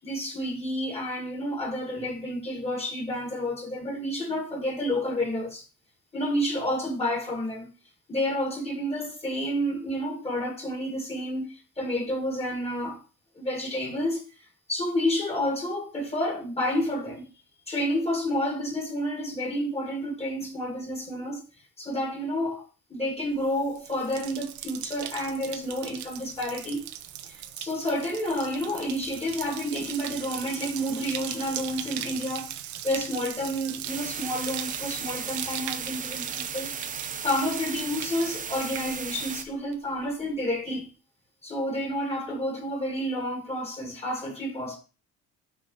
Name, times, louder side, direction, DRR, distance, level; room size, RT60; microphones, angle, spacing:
voice 1, 0.0-5.6 6.1-7.7 8.1-11.5 11.8-13.0 13.4-14.2 14.7-17.3 17.7-21.4 21.8-26.9 27.3-32.5 32.8-36.7 37.2-40.9 41.4-44.8, equal, 20° left, 1.7 m, -30 dB
Bathtub (filling or washing), 23.4-39.5 39.7-40.3, right 11 dB, 75° right, 0.8 m, -39 dB
sound 1, 33.9-39.4, right 7 dB, 25° right, 0.6 m, -36 dB
6.4 x 4.0 x 5.3 m
cardioid pair, 130°, 29 cm